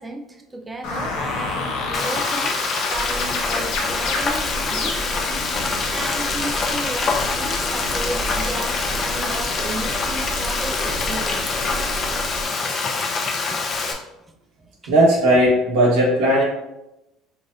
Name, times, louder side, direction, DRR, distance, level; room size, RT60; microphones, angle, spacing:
voice 1, 0.0-2.6 2.9-5.0 5.9-11.7 13.5-13.6 14.8-14.9, right 2 dB, 20° right, 5 dB, 0.4 m, -33 dB
sound 1, 0.8-5.3, left 3 dB, 75° left, 0.8 m, -28 dB
Frying (food), 1.9-13.9, left 4 dB, 40° left, 0.6 m, -25 dB
sound 2, 2.9-12.4, right 1 dB, 40° right, 1.3 m, -33 dB
voice 2, 14.9-16.4, right 1 dB, 90° right, -4 dB, 1.5 m, -16 dB
4.7 x 2.5 x 2.7 m, 0.94 s
supercardioid pair, 105°, 0 cm